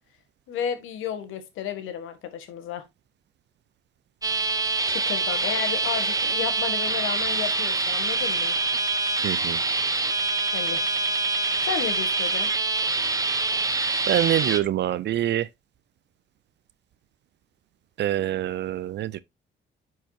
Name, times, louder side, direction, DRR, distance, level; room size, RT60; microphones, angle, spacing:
voice 1, 0.5-2.8 4.9-8.6 10.5-10.8 11.6-12.5, left 8 dB, 90° left, 1.4 m, -32 dB
sound 1, 4.2-14.6, right 3 dB, 20° right, 0.8 m, -25 dB
voice 2, 9.2-9.6 14.1-15.4 18.0-19.2, right 12 dB, 60° right, 0.4 m, -25 dB
10.0 x 4.6 x 2.8 m
cardioid pair, 90°, 20 cm